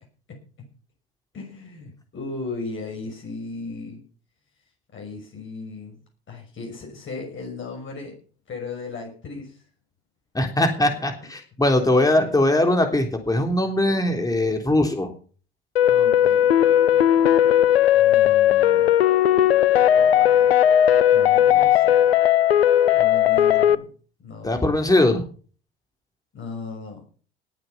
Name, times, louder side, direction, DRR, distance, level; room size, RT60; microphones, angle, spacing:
voice 1, 1.3-4.0 4.9-6.0 6.3-8.2 8.5-9.6 11.8-12.5 13.8-14.7 15.9-17.7 17.9-19.0 19.9-20.6 21.1-22.1 22.9-23.9 24.2-24.7 26.3-27.0, left 3 dB, 40° left, 1 dB, 6.1 m, -37 dB
voice 2, 10.3-15.1 24.4-25.2, left 1 dB, 10° left, 5 dB, 3.4 m, -20 dB
sound 1, 15.8-23.8, left 10 dB, 85° left, 0.7 m, -17 dB
19.5 x 7.9 x 5.8 m, 0.40 s
hypercardioid pair, 65°, 29 cm